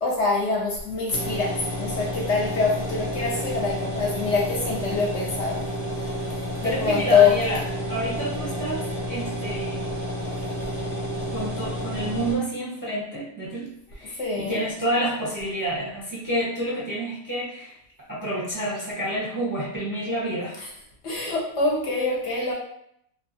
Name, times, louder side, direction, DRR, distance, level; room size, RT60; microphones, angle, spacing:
voice 1, 0.0-5.6 5.9-6.2 6.6-7.3 14.2-14.6 20.6-20.7 21.0-22.5, left 5 dB, 60° left, -3 dB, 0.8 m, -24 dB
sound 1, 1.1-12.3, equal, 20° left, 0.7 m, -30 dB
voice 2, 6.6-7.6 7.9-9.8 11.3-17.8 18.1-20.6 21.7-21.8, right 1 dB, 20° right, -8 dB, 0.5 m, -29 dB
2.9 x 2.3 x 2.7 m, 0.72 s
omnidirectional pair, 1.5 m